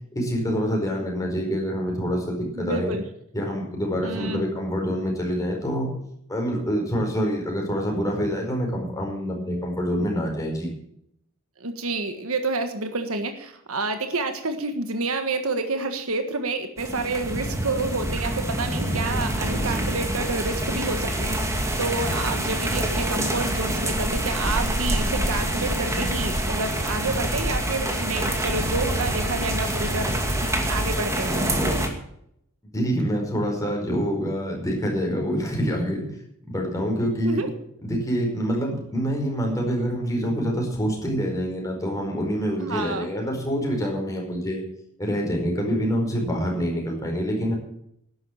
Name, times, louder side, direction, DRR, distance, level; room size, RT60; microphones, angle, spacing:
voice 1, 0.1-2.9 3.3-5.9 6.3-10.7 32.7-36.1 36.5-37.4 37.9-44.6 45.0-47.5, equal, 15° left, 0 dB, 4.9 m, -26 dB
voice 2, 2.5-3.0 4.0-4.4 11.6-30.1 30.7-31.5 37.2-37.5 42.6-43.1, right 3 dB, 70° right, 7 dB, 1.6 m, -29 dB
sound 1, 16.8-31.9, right 1 dB, 15° right, 2.2 m, -26 dB
12.0 x 10.5 x 8.7 m, 0.75 s
head